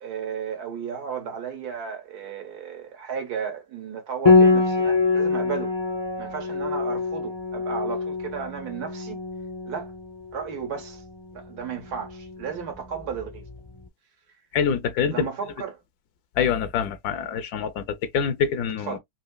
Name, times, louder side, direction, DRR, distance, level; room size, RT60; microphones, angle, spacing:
voice 1, 0.0-5.8 6.2-9.2 9.7-9.9 10.3-11.0 11.3-13.4 15.1-15.8 18.9-19.0, right 7 dB, 85° right, 1.7 m, -34 dB
Piano, 4.3-13.6, left 4 dB, 35° left, 0.4 m, -25 dB
voice 2, 14.5-15.3 16.4-19.0, left 7 dB, 80° left, 1.1 m, -25 dB
4.1 x 2.7 x 2.2 m
omnidirectional pair, 1.6 m